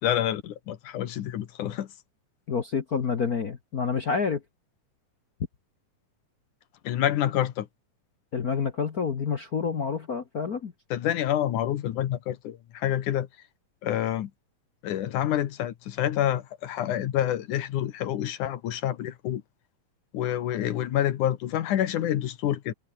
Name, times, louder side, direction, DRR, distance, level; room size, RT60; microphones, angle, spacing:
voice 1, 0.0-1.9 6.8-7.7 10.9-13.3 13.8-14.3 14.8-19.4 20.1-22.7, left 11 dB, 75° left, 2.8 m, -27 dB
voice 2, 2.5-4.4 8.3-10.7, left 5 dB, 60° left, 0.9 m, -28 dB
omnidirectional pair, 3.7 m